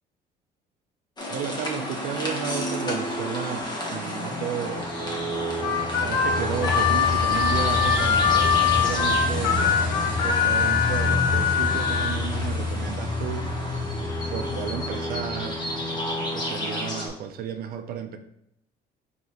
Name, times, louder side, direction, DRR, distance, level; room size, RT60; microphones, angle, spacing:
sound 1, 1.2-17.1, left 2 dB, 25° left, 1.1 m, -28 dB
voice 1, 1.3-4.9 6.0-13.5 14.3-15.6 16.3-18.2, right 8 dB, 65° right, 7 dB, 0.5 m, -33 dB
Harmonica, 5.6-12.2, left 7 dB, 85° left, 0.8 m, -23 dB
5.1 x 2.9 x 3.0 m, 0.77 s
cardioid pair, 110°, 17 cm